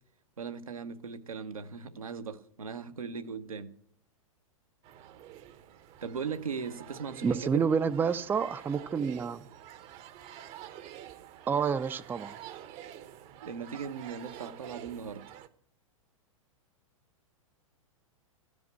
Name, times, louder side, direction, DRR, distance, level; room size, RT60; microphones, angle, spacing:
voice 1, 0.4-3.7 6.0-7.7 13.4-15.2, right 6 dB, 80° right, 1.0 m, -38 dB
sound 1, 4.8-15.5, right 11 dB, 35° right, 0.8 m, -48 dB
voice 2, 7.2-9.5 11.5-12.4, right 6 dB, 10° right, 0.5 m, -29 dB
14.0 x 5.2 x 8.1 m
figure-of-eight pair, 105°, 18 cm